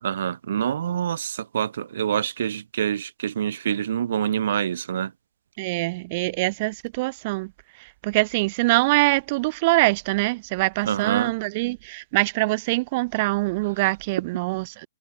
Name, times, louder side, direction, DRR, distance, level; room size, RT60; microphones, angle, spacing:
voice 1, 0.0-5.1 10.9-11.3, right 9 dB, 50° right, 4.1 m, -26 dB
voice 2, 5.6-14.9, right 23 dB, 35° right, 3.0 m, -24 dB
figure-of-eight pair, 120°, 0 cm